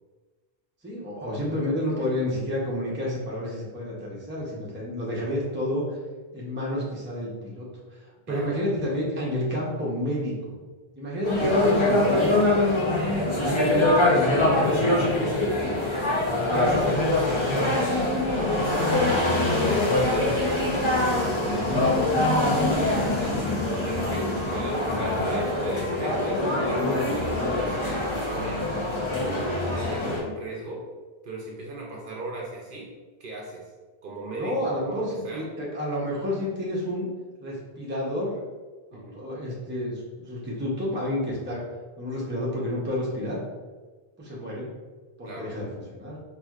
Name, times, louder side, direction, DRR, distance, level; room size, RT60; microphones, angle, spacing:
voice 1, 0.8-6.0 6.3-10.6 10.9-12.5 13.1-15.1 34.3-37.1 37.4-38.4 38.9-41.6 42.0-43.4 44.2-44.7 45.2-46.2, left 1 dB, 15° right, -5 dB, 0.6 m, -30 dB
sound 1, 11.2-30.2, left 2 dB, 35° left, 0.6 m, -23 dB
voice 2, 13.0-13.3 15.5-20.4 20.7-22.2 22.6-23.4 23.8-28.7 29.1-30.8 31.2-32.9 33.2-33.7 34.0-35.5 38.9-39.2 45.3-45.5, right 2 dB, 60° right, -2 dB, 0.7 m, -37 dB
4.3 x 2.5 x 2.3 m, 1.4 s
omnidirectional pair, 1.0 m